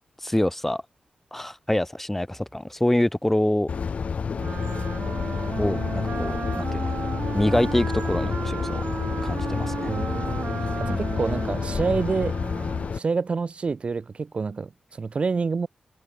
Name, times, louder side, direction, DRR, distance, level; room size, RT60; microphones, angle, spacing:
voice 1, 0.2-0.8 1.3-3.7 5.6-6.9 7.3-8.8 9.2-9.7 10.9-11.1, left 1 dB, 10° left, 1.3 m, -25 dB
sound 1, 3.7-13.0, left 5 dB, 55° left, 0.4 m, -29 dB
Wind instrument woodwind instrument, 4.3-13.0, right 6 dB, 75° right, 1.1 m, -34 dB
voice 2, 9.9-12.4 12.9-15.7, right 4 dB, 45° right, 0.8 m, -28 dB
wide cardioid pair, 100°, 3 cm